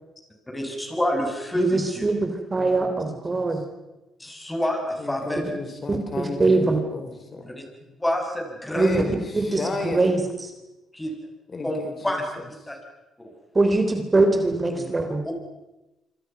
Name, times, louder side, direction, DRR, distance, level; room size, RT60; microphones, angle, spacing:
voice 1, 0.5-2.1 4.2-5.5 8.0-8.9 10.9-11.1 11.6-11.8 12.0-12.2 12.7-12.8 13.2-13.3 15.2-15.3, equal, 10° left, 2 dB, 7.6 m, -27 dB
voice 2, 1.5-3.6 5.4-5.5 5.9-6.8 8.7-9.0 9.3-10.5 13.5-15.2, right 3 dB, 25° right, 6 dB, 3.6 m, -22 dB
voice 3, 2.6-3.5 5.0-7.5 7.9-8.0 8.7-10.1 11.5-12.5 14.7-15.1, left 3 dB, 35° left, 5 dB, 4.7 m, -34 dB
26.5 x 26.0 x 6.0 m, 1.0 s
cardioid pair, 90°, 0 cm